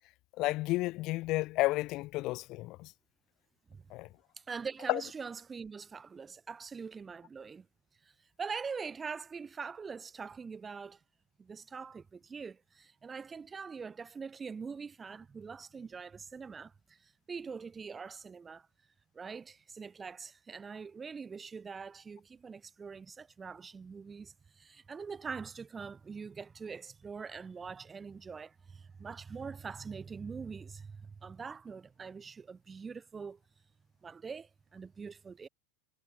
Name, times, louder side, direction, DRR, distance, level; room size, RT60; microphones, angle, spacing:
voice 1, 0.4-2.9 3.9-4.1 4.9-5.0, left 19 dB, 50° left, 0.5 m, -31 dB
voice 2, 4.5-7.7 8.4-11.0 11.4-18.7 19.1-33.4 34.0-35.5, right 5 dB, 20° right, 1.1 m, -43 dB
supercardioid pair, 125°, 0 cm